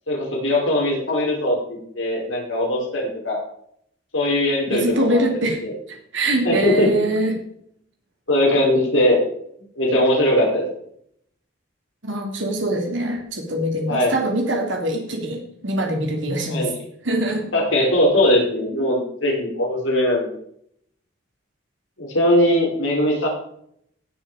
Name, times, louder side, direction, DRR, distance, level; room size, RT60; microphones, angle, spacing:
voice 1, 0.1-3.4 4.1-5.2 5.6-5.7 6.4-6.9 8.3-9.2 9.8-10.6 13.9-14.1 16.5-16.7 17.5-20.3 22.0-23.3, left 1 dB, 80° left, -2 dB, 5.1 m, -20 dB
voice 2, 4.7-5.6 5.9-7.5 12.0-16.6 17.0-17.5, right 1 dB, 70° right, 2 dB, 3.2 m, -23 dB
18.0 x 6.8 x 5.1 m, 0.68 s
head